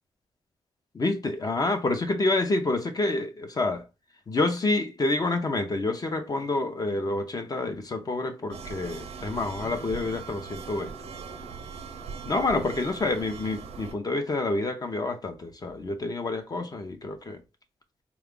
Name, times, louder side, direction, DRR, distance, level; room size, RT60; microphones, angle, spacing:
voice 1, 0.9-3.8 4.3-10.9 12.3-17.4, left 2 dB, 35° left, 0.6 m, -28 dB
sound 1, 8.5-13.9, right 5 dB, 80° right, 0.6 m, -40 dB
3.9 x 2.3 x 3.6 m
cardioid pair, 90°, 11 cm